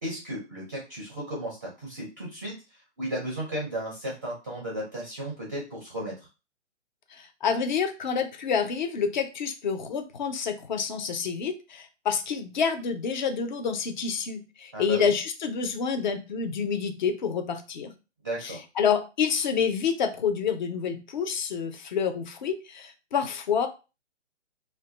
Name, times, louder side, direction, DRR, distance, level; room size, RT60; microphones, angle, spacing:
voice 1, 0.0-6.1 14.7-15.1 18.2-18.6, right 1 dB, 15° right, -4 dB, 0.5 m, -34 dB
voice 2, 7.1-17.9 18.4-23.7, left 6 dB, 40° left, 7 dB, 0.5 m, -28 dB
2.5 x 2.2 x 3.7 m, 0.30 s
hypercardioid pair, 150°, 36 cm